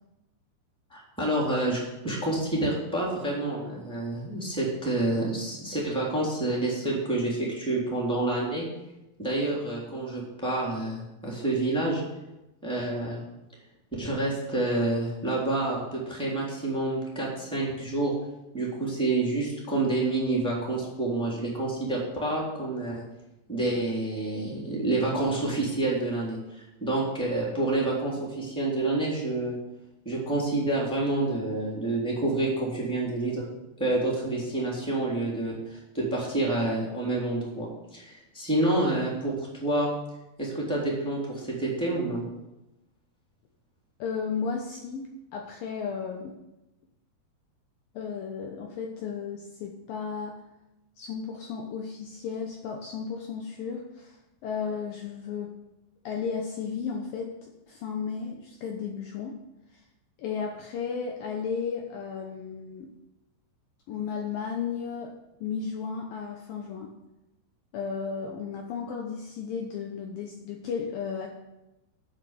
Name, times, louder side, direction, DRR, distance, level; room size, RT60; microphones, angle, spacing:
voice 1, 0.9-8.6 9.2-12.0 12.6-13.2 14.0-18.1 18.5-23.0 23.5-29.6 30.0-33.5 33.8-39.9 40.4-42.2, right 2 dB, ahead, -4 dB, 2.9 m, -28 dB
voice 2, 44.0-46.3 47.9-50.4 51.0-55.5 56.0-59.4 59.7-59.8 60.2-62.9 63.9-66.9 67.7-71.3, left 6 dB, 70° left, 1 dB, 2.5 m, -34 dB
14.0 x 5.9 x 7.6 m, 0.97 s
omnidirectional pair, 4.7 m